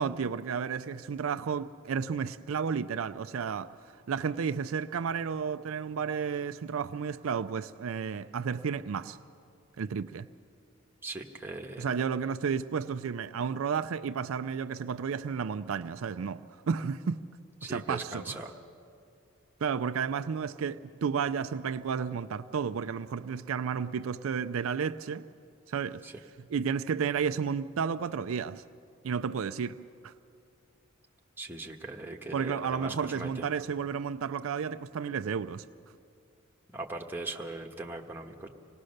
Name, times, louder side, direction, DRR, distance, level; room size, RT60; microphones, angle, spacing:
voice 1, 0.0-3.7 4.1-9.2 9.8-10.3 11.8-17.2 17.7-18.4 19.6-25.2 25.7-26.0 26.5-28.6 29.0-29.8 30.0-30.1 32.3-35.6, right 6 dB, 70° right, 0.4 m, -32 dB
voice 2, 11.0-11.8 17.6-18.5 26.0-26.1 31.4-33.5 36.7-38.5, right 2 dB, 10° right, 1.2 m, -39 dB
26.0 x 18.5 x 6.5 m
head